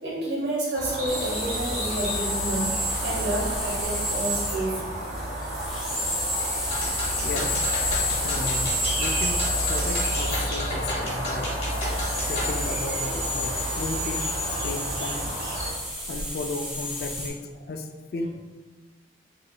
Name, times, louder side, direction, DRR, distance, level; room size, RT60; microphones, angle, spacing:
voice 1, 0.0-4.8, right 1 dB, 75° right, -4 dB, 1.1 m, -29 dB
sound 1, 0.7-15.7, right 1 dB, 50° right, 1.1 m, -31 dB
sound 2, 1.1-17.3, left 1 dB, ahead, 0.6 m, -30 dB
sound 3, 6.6-12.5, left 1 dB, 35° left, 1.0 m, -33 dB
voice 2, 7.0-7.7 8.2-9.4 9.7-11.6 12.2-15.3 16.1-18.3, left 2 dB, 60° left, 4 dB, 0.3 m, -34 dB
4.7 x 2.4 x 2.2 m, 1.3 s
head